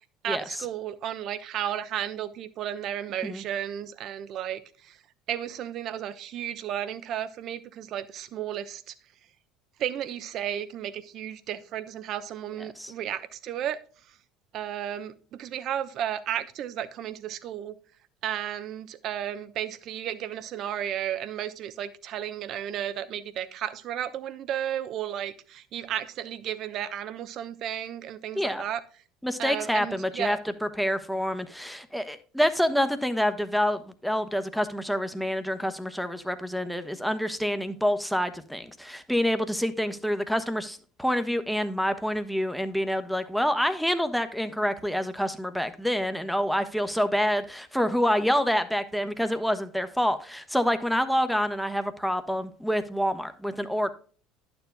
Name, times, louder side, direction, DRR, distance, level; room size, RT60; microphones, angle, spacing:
voice 1, 0.2-5.0 5.3-8.9 9.8-13.8 14.5-17.7 18.2-28.8 29.4-30.4, right 10 dB, 55° right, 0.8 m, -33 dB
voice 2, 28.3-28.7 29.2-53.9, equal, ahead, 1.0 m, -27 dB
11.0 x 7.1 x 2.2 m
hypercardioid pair, 75°, 0 cm